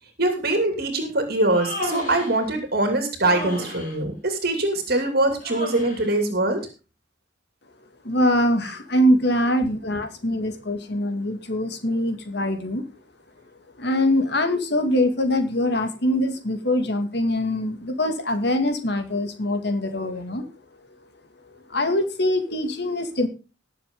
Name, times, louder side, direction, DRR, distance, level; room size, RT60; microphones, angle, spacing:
voice 1, 0.2-6.6 9.6-10.0, right 2 dB, 55° right, 5 dB, 2.7 m, -23 dB
Human voice, 1.4-2.4 3.2-4.0 5.4-6.1, left 1 dB, 45° left, 4.9 m, -33 dB
voice 2, 8.0-12.8 13.8-20.5 21.7-23.3, left 1 dB, 60° left, 6 dB, 2.3 m, -23 dB
20.0 x 7.1 x 3.8 m, 0.32 s
head